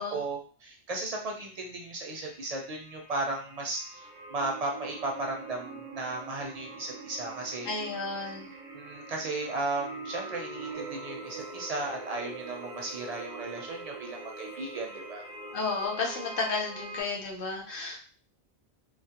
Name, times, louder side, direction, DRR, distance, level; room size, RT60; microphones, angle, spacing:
voice 1, 0.0-7.7 8.7-15.2, right 2 dB, 55° right, 0 dB, 0.4 m, -35 dB
sound 1, 1.2-1.3 1.7-17.0, right 3 dB, 85° right, 0.9 m, -44 dB
voice 2, 7.6-8.5 15.5-18.0, left 4 dB, 60° left, -1 dB, 0.8 m, -32 dB
sound 2, 10.7-15.9, left 6 dB, 85° left, 0.9 m, -51 dB
2.3 x 2.0 x 2.8 m, 0.41 s
omnidirectional pair, 1.1 m